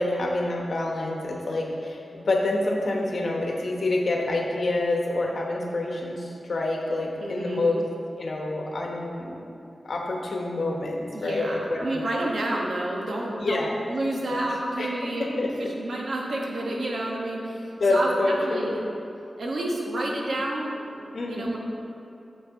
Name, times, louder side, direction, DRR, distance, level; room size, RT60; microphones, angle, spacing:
voice 1, 0.0-7.8 8.2-9.4 9.8-12.0 13.4-13.8 14.3-14.4 14.8-15.7 17.8-18.8 21.1-21.5, left 2 dB, 60° left, 0 dB, 1.1 m, -27 dB
voice 2, 7.2-7.7 11.1-15.3 15.6-18.8 19.4-21.6, right 1 dB, 70° right, -2 dB, 1.3 m, -30 dB
7.0 x 6.7 x 4.7 m, 2.7 s
wide cardioid pair, 135°, 0 cm